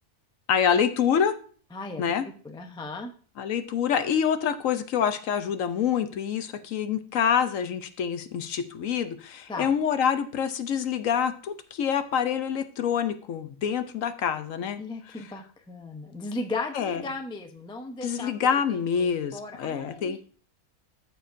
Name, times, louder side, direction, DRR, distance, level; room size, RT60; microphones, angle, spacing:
voice 1, 0.5-1.3 2.0-2.2 3.4-14.8 16.7-17.0 18.0-20.2, left 7 dB, 65° left, 10 dB, 1.0 m, -26 dB
voice 2, 1.7-2.0 2.4-3.1 9.5-9.7 14.8-18.3 18.7-20.2, left 3 dB, 10° left, 4 dB, 0.3 m, -36 dB
13.5 x 4.8 x 2.6 m, 0.43 s
omnidirectional pair, 1.6 m